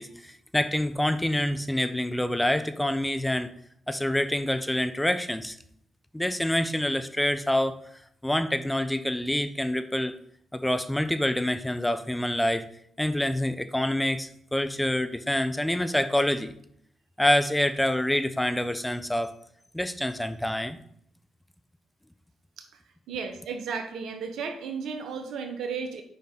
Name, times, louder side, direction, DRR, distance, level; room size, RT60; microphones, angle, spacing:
voice 1, 0.0-3.5 3.9-5.6 6.1-7.8 8.2-10.1 10.5-12.7 13.0-16.5 17.2-19.4 19.7-20.8, left 1 dB, 10° left, 11 dB, 0.6 m, -26 dB
voice 2, 23.1-26.0, right 5 dB, 70° right, 6 dB, 1.2 m, -34 dB
7.3 x 5.6 x 3.9 m, 0.67 s
hypercardioid pair, 50°, 0 cm